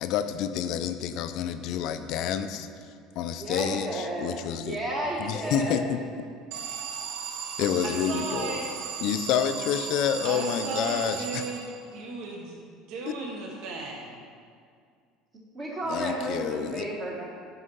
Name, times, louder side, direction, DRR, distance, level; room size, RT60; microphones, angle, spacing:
voice 1, 0.0-2.7 3.2-4.8 5.2-6.0 7.6-8.6 9.0-11.4 13.1-13.2 15.9-16.9, left 8 dB, 45° left, 10 dB, 0.5 m, -28 dB
voice 2, 3.4-5.9 15.5-17.2, right 1 dB, 20° right, -3 dB, 1.2 m, -32 dB
Alarm, 6.5-12.1, right 7 dB, 70° right, 1.0 m, -36 dB
voice 3, 7.8-8.7 10.2-12.6 12.9-14.2, right 4 dB, 50° right, -1 dB, 1.3 m, -36 dB
9.7 x 5.5 x 5.5 m, 2.2 s
cardioid pair, 175°, 0 cm